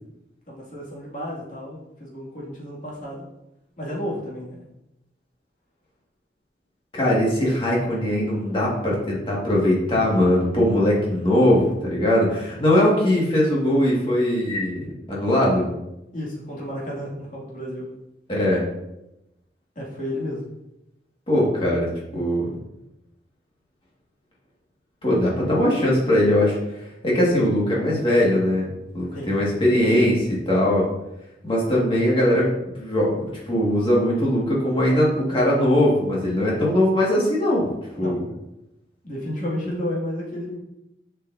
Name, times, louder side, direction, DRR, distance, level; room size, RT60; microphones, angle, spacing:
voice 1, 0.5-3.3 3.8-4.6 16.1-17.9 19.8-20.5 29.1-29.3 38.0-38.2 39.0-40.6, left 1 dB, 45° left, -6 dB, 2.3 m, -32 dB
voice 2, 6.9-15.7 18.3-18.6 21.3-22.5 25.0-26.6 27.0-28.7 28.9-30.9 31.4-37.7 38.0-38.2, left 1 dB, 30° left, -5 dB, 1.9 m, -20 dB
7.3 x 5.6 x 2.7 m, 0.89 s
head